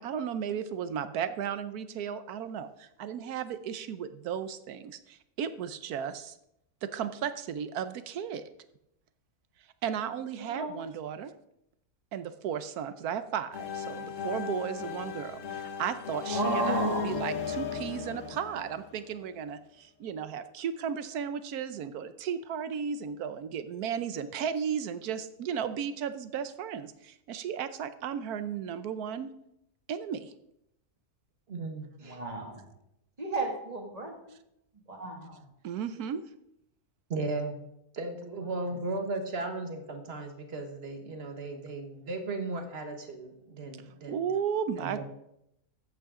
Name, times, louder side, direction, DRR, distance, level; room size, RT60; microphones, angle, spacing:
voice 1, 0.0-6.3 6.8-8.4 9.8-11.3 12.1-29.3 29.9-30.3 35.6-36.2 44.1-45.0, right 8 dB, 80° right, 12 dB, 1.2 m, -35 dB
voice 2, 10.4-10.7 16.3-17.2 32.0-32.6 33.2-34.4 34.9-35.4, right 2 dB, 25° right, 1 dB, 2.1 m, -33 dB
sound 1, 13.5-19.3, left 5 dB, 60° left, 1.4 m, -35 dB
voice 3, 31.5-32.2 37.1-37.6 37.9-44.3 44.8-45.0, right 2 dB, 45° right, 6 dB, 1.5 m, -36 dB
13.5 x 8.6 x 3.7 m, 0.80 s
omnidirectional pair, 1.6 m